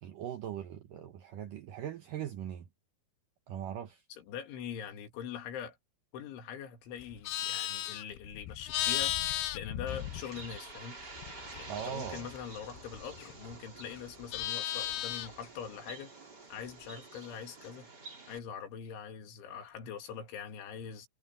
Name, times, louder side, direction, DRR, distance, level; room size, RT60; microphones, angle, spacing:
voice 1, 0.0-2.7 3.5-4.0 11.7-12.3, right 9 dB, 75° right, 2.0 m, -40 dB
voice 2, 4.1-5.8 6.1-9.2 9.5-11.0 11.6-16.1 16.5-17.9 18.3-21.1, left 8 dB, 90° left, 4.9 m, -43 dB
Livestock farm animals working animals, 7.0-10.7 11.0-13.6 13.9-15.5, left 14 dB, 75° left, 2.5 m, -36 dB
Bird, 9.9-18.4, right 3 dB, 25° right, 3.8 m, -50 dB
omnidirectional pair, 5.3 m